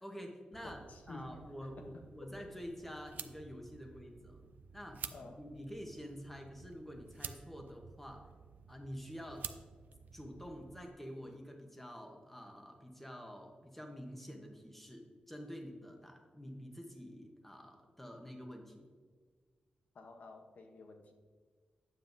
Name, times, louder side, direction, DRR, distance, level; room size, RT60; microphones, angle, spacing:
voice 1, 0.0-0.8 1.1-4.5 4.7-8.3 8.7-9.5 10.1-18.9, equal, 5° left, 2 dB, 0.9 m, -48 dB
voice 2, 0.5-1.4 1.8-2.5 5.1-5.4 19.9-21.1, left 3 dB, 65° left, 4 dB, 0.8 m, -52 dB
sound 1, 0.5-10.9, right 7 dB, 85° right, 0.3 m, -51 dB
9.2 x 7.5 x 2.6 m, 1.5 s
wide cardioid pair, 155°, 3 cm